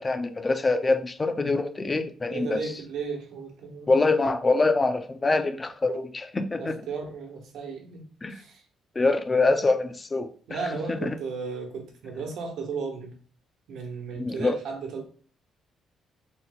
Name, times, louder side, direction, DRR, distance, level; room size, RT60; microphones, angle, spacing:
voice 1, 0.0-2.6 3.9-6.7 8.2-8.4 9.0-10.3 10.9-11.1 14.2-14.6, left 3 dB, 20° left, 0.4 m, -24 dB
voice 2, 2.3-3.9 6.5-8.0 8.3-8.6 10.5-13.1 13.7-15.0, right 5 dB, 75° right, 1.2 m, -35 dB
3.9 x 3.8 x 2.3 m
cardioid pair, 130°, 0 cm